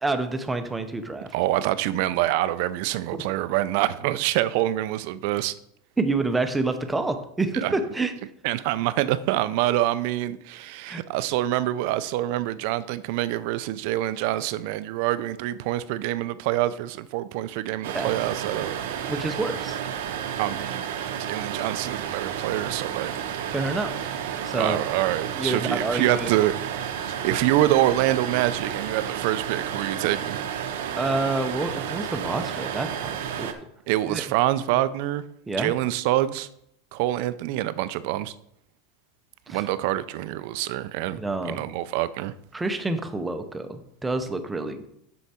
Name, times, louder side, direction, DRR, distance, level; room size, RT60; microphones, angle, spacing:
voice 1, 0.0-1.3 6.0-8.1 10.9-11.0 17.9-18.1 19.1-19.8 23.5-24.2 24.4-24.8 25.3-26.3 31.0-33.5 34.1-34.2 35.5-35.7 39.5-39.6 41.1-41.6 42.5-44.9, right 3 dB, 5° right, 0.6 m, -28 dB
voice 2, 1.3-5.5 7.5-7.7 8.4-18.8 20.4-20.9 21.2-23.1 24.5-26.6 27.1-30.4 33.9-35.2 35.6-36.5 36.9-38.3 39.5-41.2 41.4-42.3, right 14 dB, 55° right, 0.4 m, -26 dB
sound 1, 17.8-33.5, right 9 dB, 80° right, 0.9 m, -31 dB
8.0 x 6.3 x 4.3 m
supercardioid pair, 165°, 0 cm